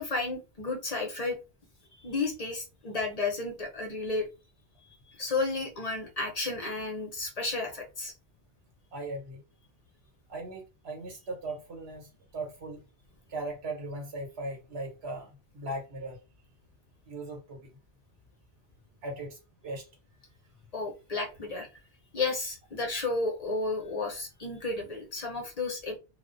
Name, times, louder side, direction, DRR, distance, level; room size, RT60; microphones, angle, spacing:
voice 1, 0.0-1.4 2.0-4.3 5.1-8.1 20.7-21.7 22.1-26.0, left 3 dB, 45° left, 0.6 m, -32 dB
voice 2, 8.9-9.4 10.3-12.8 13.3-16.2 17.1-17.7 19.0-19.9, right 2 dB, 90° right, 1.2 m, -38 dB
2.3 x 2.1 x 2.5 m
omnidirectional pair, 1.0 m